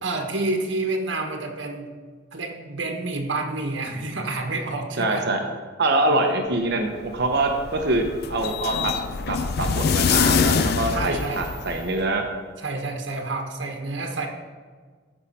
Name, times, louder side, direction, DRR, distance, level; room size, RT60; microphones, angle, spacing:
voice 1, 0.0-1.9 2.3-5.3 10.9-11.4 12.6-14.3, right 2 dB, 85° right, 3 dB, 1.2 m, -28 dB
voice 2, 5.0-5.4 5.8-8.0 8.3-8.9 9.3-12.2, right 2 dB, 60° right, 3 dB, 0.9 m, -24 dB
sound 1, 7.0-12.0, left 6 dB, 60° left, 0.4 m, -24 dB
13.5 x 5.5 x 4.3 m, 1.5 s
head